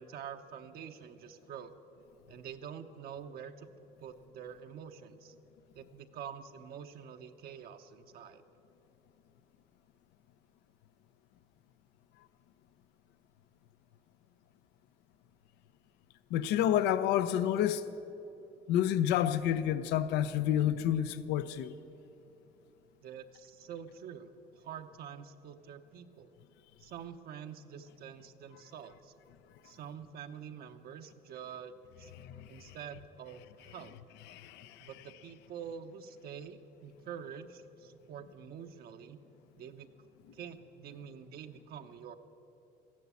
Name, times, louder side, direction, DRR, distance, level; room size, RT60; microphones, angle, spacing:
voice 1, 0.0-1.7 2.3-3.7 4.0-5.3 5.7-8.4 23.0-24.3 24.6-26.3 26.8-29.1 29.6-32.1 32.5-33.9 34.8-39.2 39.6-39.9 40.3-42.2, right 8 dB, 65° right, 0.9 m, -46 dB
voice 2, 16.3-17.9 18.7-21.8 32.2-32.7 34.3-34.9, left 10 dB, 90° left, 0.6 m, -29 dB
14.5 x 10.5 x 8.3 m
cardioid pair, 110°, 17 cm